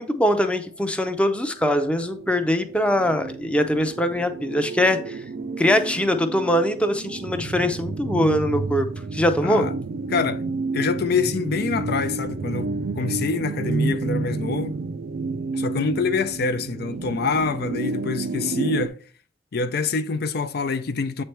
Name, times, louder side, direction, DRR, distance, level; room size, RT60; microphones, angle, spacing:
voice 1, 0.0-5.2 5.6-8.9 9.1-9.7, left 1 dB, 5° left, 0.5 m, -22 dB
sound 1, 1.0-18.9, right 3 dB, 55° right, 0.4 m, -30 dB
voice 2, 9.4-9.7 10.1-10.4 10.7-14.7 15.5-19.0 19.5-21.2, left 4 dB, 60° left, 0.4 m, -25 dB
7.9 x 3.3 x 4.4 m
head